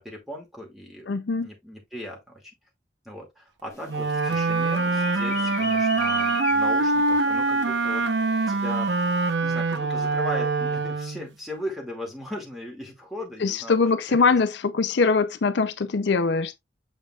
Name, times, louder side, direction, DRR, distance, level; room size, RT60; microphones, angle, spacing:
voice 1, 0.0-1.1 1.4-2.4 3.0-8.1 8.5-8.9 9.4-13.8 14.3-14.4, left 1 dB, ahead, 2.2 m, -38 dB
voice 2, 1.1-1.5 13.4-16.6, left 4 dB, 70° left, 0.5 m, -22 dB
sound 1, 3.7-9.3, left 4 dB, 15° left, 2.1 m, -38 dB
Wind instrument woodwind instrument, 3.9-11.3, right 3 dB, 75° right, 0.8 m, -24 dB
7.6 x 5.4 x 2.4 m
head